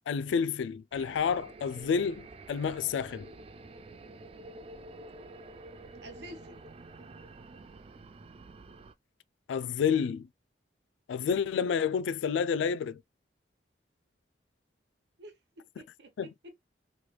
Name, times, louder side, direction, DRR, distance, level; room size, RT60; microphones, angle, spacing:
voice 1, 0.1-3.3 9.5-10.3 11.1-13.0 16.2-16.3, left 6 dB, 85° left, 0.3 m, -29 dB
sound 1, 0.9-8.9, right 2 dB, 30° right, 0.3 m, -49 dB
voice 2, 6.0-6.6 15.2-16.6, right 1 dB, 70° right, 1.0 m, -49 dB
3.2 x 3.1 x 2.2 m
head